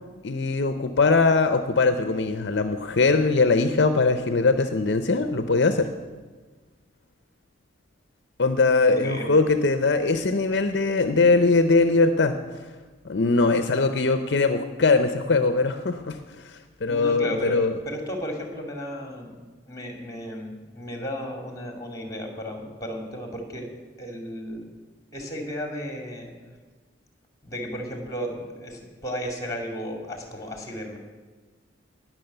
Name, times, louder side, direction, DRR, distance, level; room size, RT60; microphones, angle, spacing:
voice 1, 0.2-5.9 8.4-12.6 13.0-17.7, left 3 dB, 60° left, 9 dB, 0.6 m, -21 dB
voice 2, 8.9-9.3 16.9-19.4 19.7-23.7 24.0-24.7 25.1-26.3 27.4-31.0, equal, 20° left, 2 dB, 2.4 m, -34 dB
18.5 x 6.2 x 7.9 m, 1.4 s
head